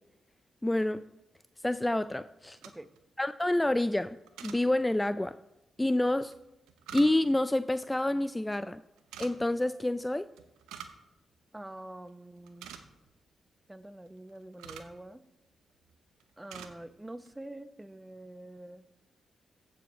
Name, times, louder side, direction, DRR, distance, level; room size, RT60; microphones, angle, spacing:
voice 1, 0.6-1.0 1.6-2.6 3.2-4.2 4.4-5.4 5.8-6.3 6.9-8.8 9.2-10.3, left 1 dB, 15° left, 14 dB, 0.3 m, -28 dB
sound 1, 2.4-3.0 4.3-4.6 6.3-7.4 9.0-9.3 10.4-11.0 11.3-11.4 11.9-12.1 12.4-13.1 14.1-15.0 15.7-16.8 17.1-17.3, right 9 dB, 85° right, 0.7 m, -47 dB
voice 2, 11.5-12.7 13.7-15.2 16.4-18.9, right 1 dB, 15° right, 14 dB, 0.7 m, -46 dB
15.0 x 7.0 x 3.1 m, 0.94 s
hypercardioid pair, 45°, 0 cm